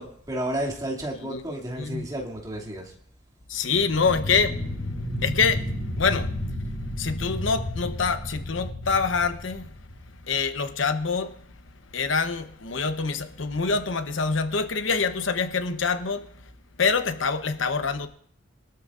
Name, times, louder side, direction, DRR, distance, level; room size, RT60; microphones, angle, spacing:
voice 1, 0.0-2.9, right 1 dB, 20° right, 2.5 m, -32 dB
voice 2, 1.8-2.1 3.5-4.6 5.2-5.6 5.9-6.3 7.0-9.7 10.3-11.3 11.9-16.3 16.8-18.1, left 5 dB, 85° left, 0.9 m, -25 dB
sound 1, 3.7-10.2, left 1 dB, 50° left, 3.8 m, -32 dB
22.5 x 12.5 x 2.5 m
head